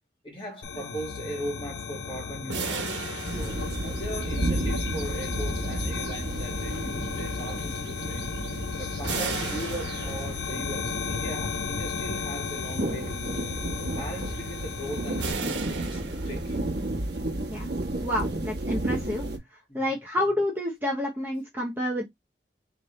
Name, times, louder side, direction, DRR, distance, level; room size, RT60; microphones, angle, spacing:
voice 1, 0.2-3.0 3.3-8.3 8.8-13.4 13.8-16.7 19.7-19.9, right 1 dB, 25° left, 1.8 m, -39 dB
sound 1, 0.6-15.3, left 6 dB, 70° left, 0.4 m, -35 dB
sound 2, 2.5-4.4 9.1-10.7 15.2-16.8, right 4 dB, 85° right, 1.2 m, -35 dB
sound 3, 3.3-19.4, right 1 dB, 60° right, 1.1 m, -33 dB
voice 2, 18.0-19.2 19.7-22.0, left 1 dB, 10° right, 0.8 m, -29 dB
4.2 x 3.1 x 3.1 m
head